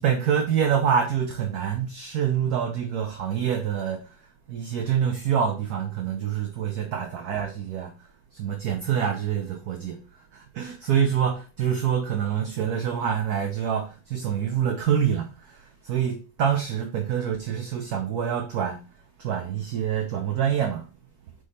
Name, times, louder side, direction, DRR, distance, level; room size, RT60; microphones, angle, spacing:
voice 1, 0.0-18.8 19.2-20.8, right 8 dB, 60° right, 1.1 m, -26 dB
6.4 x 3.8 x 4.2 m
omnidirectional pair, 2.3 m